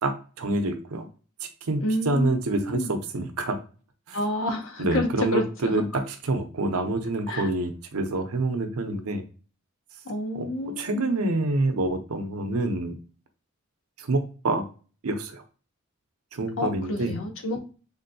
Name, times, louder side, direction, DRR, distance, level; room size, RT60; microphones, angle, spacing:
voice 1, 0.0-1.1 1.6-3.6 4.1-4.2 4.8-6.0 6.3-9.2 10.3-10.4 10.8-13.0 14.0-14.7 15.0-15.4 16.3-17.1, right 2 dB, 85° right, 0.7 m, -27 dB
voice 2, 1.8-2.9 4.1-5.8 7.3-7.5 10.0-11.1 16.6-17.6, left 1 dB, 65° left, 0.7 m, -29 dB
3.7 x 2.6 x 2.6 m
head